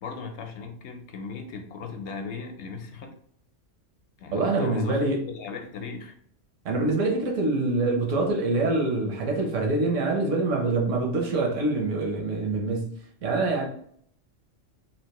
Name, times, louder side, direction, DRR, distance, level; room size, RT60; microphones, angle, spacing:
voice 1, 0.0-3.1 4.2-6.1, left 5 dB, 70° left, 0.8 m, -37 dB
voice 2, 4.3-5.2 6.6-12.9 13.2-13.7, right 2 dB, 75° right, 1.1 m, -25 dB
3.3 x 2.5 x 2.9 m
omnidirectional pair, 1.3 m